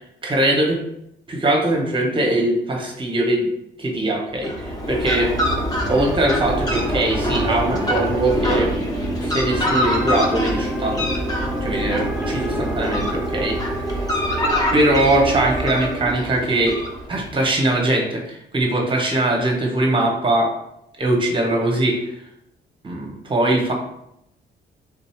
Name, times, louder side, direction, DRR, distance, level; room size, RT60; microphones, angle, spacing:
voice 1, 0.2-0.8 1.3-3.5 3.8-5.3 5.9-8.7 9.2-11.0 11.6-13.6 14.7-16.7 17.1-20.5 21.0-22.0 22.8-23.7, right 1 dB, 25° right, 1 dB, 1.1 m, -21 dB
Fowl, 4.3-17.4, equal, 20° left, 1.1 m, -25 dB
sound 1, 5.8-16.2, right 2 dB, 10° right, 0.4 m, -32 dB
3.8 x 2.6 x 4.5 m, 0.79 s
cardioid pair, 100°, 19 cm